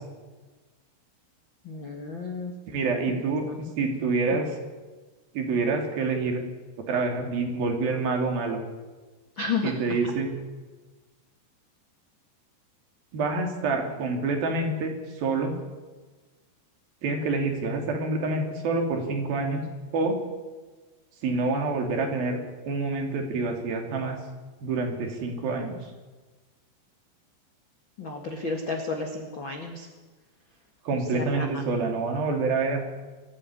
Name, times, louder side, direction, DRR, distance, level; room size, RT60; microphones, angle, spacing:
voice 1, 1.6-2.5 3.4-3.6 9.4-10.0 28.0-29.9 31.1-31.5, left 4 dB, 60° left, 3 dB, 1.3 m, -32 dB
voice 2, 2.7-3.4 3.8-4.6 5.3-6.4 6.9-8.6 9.6-10.3 13.1-15.5 17.0-19.6 19.9-20.2 21.2-22.4 22.7-24.2 24.6-25.8 30.9-32.8, right 3 dB, 55° right, 3 dB, 4.3 m, -27 dB
22.5 x 14.0 x 9.8 m, 1.3 s
omnidirectional pair, 5.5 m